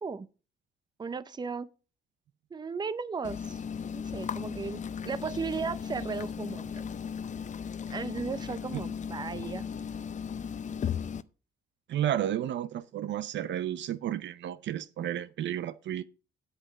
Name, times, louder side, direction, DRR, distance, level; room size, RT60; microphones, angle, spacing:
voice 1, 1.0-1.7 2.5-3.6 3.9-6.8 7.9-9.7, right 5 dB, 20° right, 0.6 m, -36 dB
sound 1, 3.2-11.2, left 7 dB, 40° left, 0.5 m, -36 dB
voice 2, 11.9-16.0, right 11 dB, 65° right, 0.6 m, -32 dB
8.5 x 8.1 x 5.1 m
cardioid pair, 90°, 20 cm